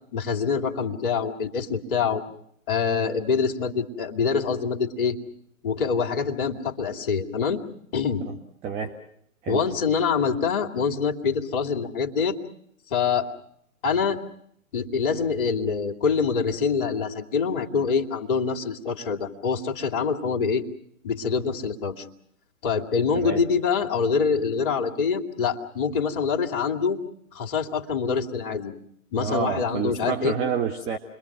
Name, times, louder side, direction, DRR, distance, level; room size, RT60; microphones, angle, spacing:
voice 1, 0.1-2.2 2.7-5.2 5.6-7.6 7.9-8.2 9.5-12.4 12.9-13.3 13.8-14.2 14.7-20.6 21.0-22.1 22.6-27.0 27.3-28.7 29.1-30.3, left 5 dB, 40° left, 3 dB, 2.5 m, -25 dB
voice 2, 8.6-9.0 9.4-9.7 23.1-23.4 29.2-31.0, right 6 dB, 15° right, 6 dB, 1.1 m, -28 dB
29.5 x 22.5 x 6.1 m, 0.73 s
figure-of-eight pair, 130°, 42 cm